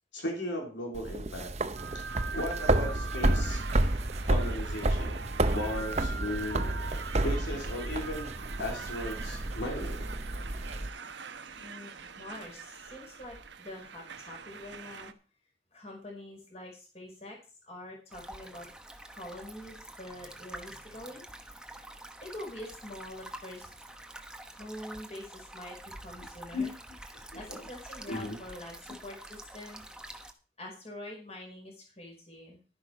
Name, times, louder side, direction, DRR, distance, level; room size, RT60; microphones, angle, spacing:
voice 1, 0.1-1.5 1.9-2.0 2.3-3.6 4.2-5.2 5.5-6.7 7.2-8.3 8.6-10.1 26.5-26.7 27.1-27.4 28.1-28.4, left 1 dB, 70° left, 1 dB, 3.3 m, -36 dB
sound 1, 1.0-10.9, right 1 dB, 35° right, 0.8 m, -30 dB
sound 2, 1.7-15.1, right 5 dB, 70° right, 1.0 m, -43 dB
voice 2, 11.6-15.1 15.7-17.4 17.6-18.7 19.0-21.6 22.2-23.7 24.6-26.7 27.1-29.8 30.6-32.6, left 1 dB, 35° left, 0 dB, 5.0 m, -45 dB
sound 3, 18.1-30.3, right 1 dB, 5° right, 1.0 m, -47 dB
12.0 x 10.5 x 4.7 m, 0.35 s
head